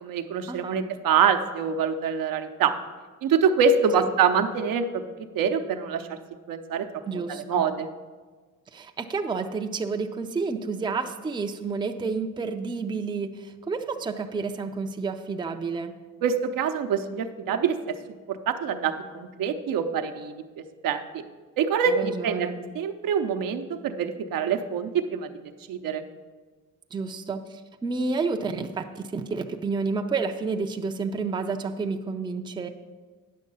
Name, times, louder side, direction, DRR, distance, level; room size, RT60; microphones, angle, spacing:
voice 1, 0.0-2.7 3.2-5.0 5.3-6.2 6.5-6.9 7.3-7.9 16.2-17.9 18.3-20.4 20.8-21.2 21.6-22.5 22.7-25.3 25.7-26.0, right 6 dB, 70° right, 7 dB, 0.8 m, -25 dB
voice 2, 7.1-7.6 8.7-16.0 21.9-22.6 26.9-32.7, right 4 dB, 15° right, 5 dB, 0.5 m, -30 dB
9.4 x 6.4 x 5.4 m, 1.4 s
cardioid pair, 105°, 35 cm